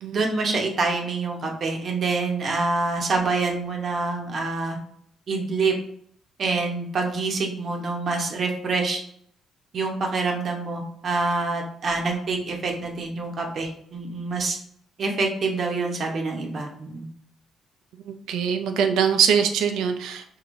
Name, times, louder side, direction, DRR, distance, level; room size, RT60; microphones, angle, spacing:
voice 1, 0.1-4.8 5.3-5.7 6.4-9.0 9.7-14.6 15.0-17.1, right 3 dB, 55° right, 2 dB, 0.9 m, -26 dB
voice 2, 18.1-20.4, right 7 dB, 85° right, 6 dB, 0.5 m, -23 dB
4.6 x 2.8 x 2.6 m, 0.67 s
cardioid pair, 90°, 0 cm